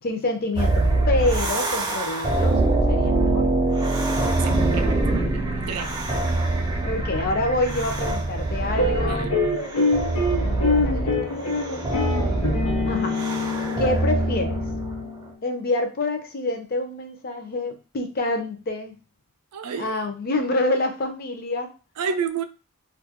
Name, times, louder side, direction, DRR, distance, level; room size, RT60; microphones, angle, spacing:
voice 1, 0.0-2.6 2.9-3.5 4.5-4.6 5.7-5.8 6.8-9.4 10.4-11.7 12.9-13.2 13.8-14.6 15.4-19.0 19.8-21.7, left 2 dB, 40° left, 0.4 m, -27 dB
sound 1, 0.6-15.1, right 2 dB, 20° right, 0.4 m, -24 dB
voice 2, 4.4-5.1 5.3-6.0 9.1-9.4 19.5-19.9 22.0-22.4, right 6 dB, 85° right, 0.3 m, -30 dB
sound 2, 8.8-15.3, left 3 dB, 80° left, 0.9 m, -25 dB
2.3 x 2.2 x 2.8 m
head